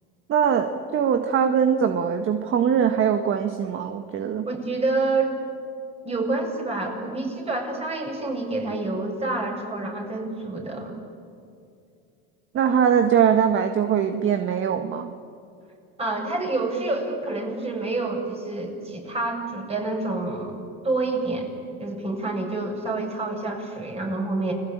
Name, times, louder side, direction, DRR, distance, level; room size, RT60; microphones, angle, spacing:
voice 1, 0.3-4.5 12.5-15.1, right 8 dB, 40° right, 7 dB, 1.6 m, -22 dB
voice 2, 4.5-5.3 6.0-11.0 16.0-21.5 21.8-24.5, right 2 dB, 20° right, 2 dB, 7.5 m, -28 dB
29.5 x 21.5 x 8.8 m, 2.5 s
supercardioid pair, 110°, 30 cm